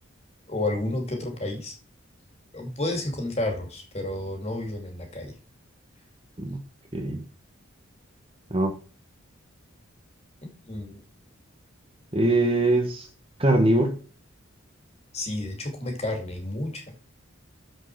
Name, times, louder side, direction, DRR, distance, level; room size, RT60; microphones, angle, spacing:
voice 1, 0.5-1.7 2.5-5.3 10.4-11.0 15.1-16.8, left 1 dB, 30° left, 2.5 m, -31 dB
voice 2, 12.1-13.1 13.4-14.0, right 1 dB, 25° right, 1.1 m, -22 dB
7.4 x 6.6 x 4.6 m
head